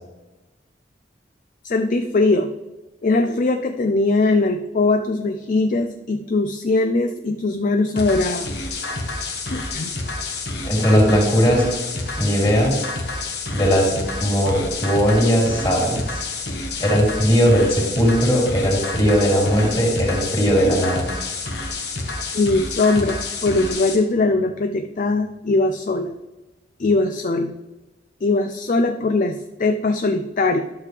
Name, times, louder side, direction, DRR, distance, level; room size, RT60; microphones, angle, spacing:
voice 1, 1.6-2.5 3.0-8.5 9.5-9.9 22.3-26.2 26.8-27.5 28.2-30.6, left 3 dB, 45° left, 7 dB, 0.4 m, -20 dB
sound 1, 8.0-24.0, left 3 dB, 65° left, 1.4 m, -29 dB
voice 2, 10.6-11.7 12.2-12.9 13.5-16.1 16.8-21.1, equal, 25° left, -2 dB, 2.8 m, -18 dB
11.5 x 6.7 x 3.3 m, 1.1 s
head